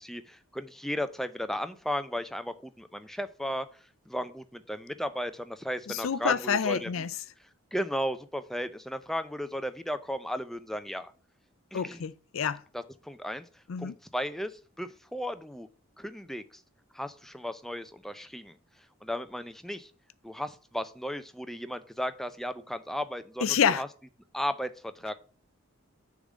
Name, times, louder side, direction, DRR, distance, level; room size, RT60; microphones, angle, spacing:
voice 1, 0.0-3.7 4.1-7.1 7.7-11.1 11.7-12.0 12.7-13.5 13.8-15.7 16.0-16.6 16.9-18.6 19.0-19.9 20.2-23.9 24.3-25.1, equal, ahead, 0.4 m, -35 dB
voice 2, 5.9-7.1 11.7-12.6 13.7-13.9 23.4-23.8, left 7 dB, 70° left, 0.5 m, -28 dB
6.7 x 3.7 x 6.2 m
head